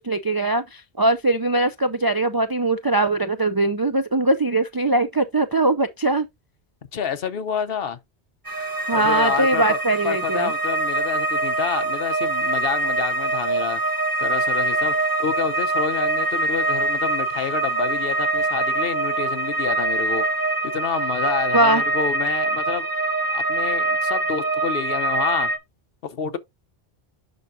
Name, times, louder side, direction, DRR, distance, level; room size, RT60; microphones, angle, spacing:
voice 1, 0.0-6.3 8.9-10.5 21.5-21.8, right 2 dB, 40° right, 0.3 m, -21 dB
voice 2, 6.9-8.0 8.9-9.8 10.0-13.8 14.2-20.2 20.6-22.9 23.3-25.5 26.0-26.4, left 7 dB, 65° left, 1.0 m, -28 dB
sound 1, 8.5-25.6, right 2 dB, 20° right, 1.1 m, -24 dB
10.5 x 4.6 x 2.6 m
omnidirectional pair, 1.1 m